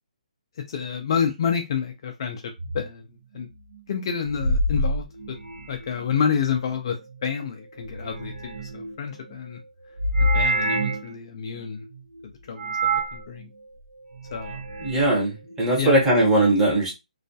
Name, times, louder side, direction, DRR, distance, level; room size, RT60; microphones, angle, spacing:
voice 1, 0.7-2.4 2.7-3.1 3.3-3.5 3.9-5.1 5.7-7.0 7.2-9.6 10.2-11.8 12.5-13.5 14.3-14.6 15.8-16.0, left 7 dB, 35° left, 4 dB, 0.3 m, -28 dB
sound 1, 2.6-2.8 4.2-5.9 7.8-8.9 10.0-11.1 12.6-13.2 14.2-15.1, right 1 dB, 80° right, 0.4 m, -26 dB
voice 2, 14.8-16.9, right 1 dB, 10° right, -2 dB, 0.7 m, -20 dB
2.3 x 2.1 x 2.6 m, 0.23 s
hypercardioid pair, 165°, 4 cm